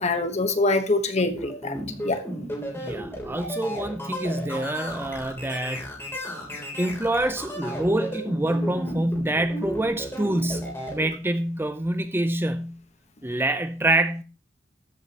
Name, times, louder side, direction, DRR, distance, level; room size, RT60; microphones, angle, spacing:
voice 1, 0.0-1.7 2.0-2.2, left 2 dB, 40° left, 1.1 m, -24 dB
sound 1, 1.3-11.1, equal, 15° left, 3.3 m, -34 dB
voice 2, 2.7-5.8 6.8-12.8 13.2-14.2, right 1 dB, 10° right, 0.6 m, -26 dB
13.5 x 8.4 x 2.9 m
head